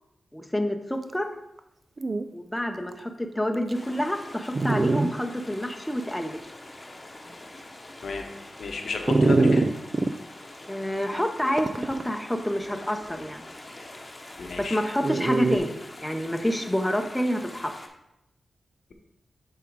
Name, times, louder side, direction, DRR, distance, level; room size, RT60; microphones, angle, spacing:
voice 1, 0.3-1.3 2.3-6.4 10.7-13.4 14.7-17.7, equal, 5° left, 4 dB, 0.7 m, -28 dB
Dog, 1.6-1.7 2.0-2.2 2.9-3.0 3.7-3.8 4.5-5.1 5.6-5.7 9.1-10.1 11.6-12.1 15.0-15.6, right 3 dB, 45° right, 0.3 m, -22 dB
sound 1, 3.7-17.9, left 2 dB, 30° left, 1.0 m, -45 dB
voice 2, 8.6-9.6 14.4-14.8, left 3 dB, 70° left, 4 dB, 0.9 m, -31 dB
6.9 x 3.7 x 4.6 m, 0.86 s
cardioid pair, 70°, 0 cm